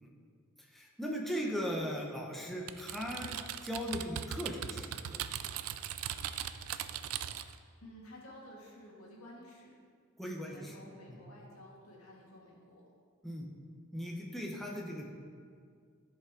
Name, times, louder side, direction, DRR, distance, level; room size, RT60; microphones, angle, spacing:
voice 1, 0.7-5.2 10.2-10.7 11.1-11.2 13.2-13.5 13.9-15.1, equal, ahead, -2 dB, 0.9 m, -38 dB
Typing, 2.7-7.6, right 10 dB, 85° right, 0.4 m, -39 dB
voice 2, 7.8-9.7 10.4-12.9, left 1 dB, 85° left, -4 dB, 2.1 m, -53 dB
13.0 x 5.6 x 3.8 m, 2.1 s
head